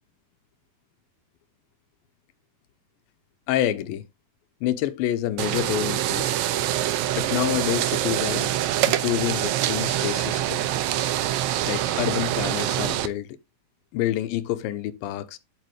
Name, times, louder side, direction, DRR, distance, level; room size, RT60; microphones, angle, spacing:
voice 1, 3.5-4.0 4.6-6.4 7.2-8.5 8.8-10.6 11.7-13.3 13.9-15.4, left 12 dB, 90° left, 2.4 m, -27 dB
sound 1, 5.4-13.1, right 13 dB, 85° right, 1.6 m, -25 dB
9.2 x 7.6 x 3.2 m
omnidirectional pair, 4.1 m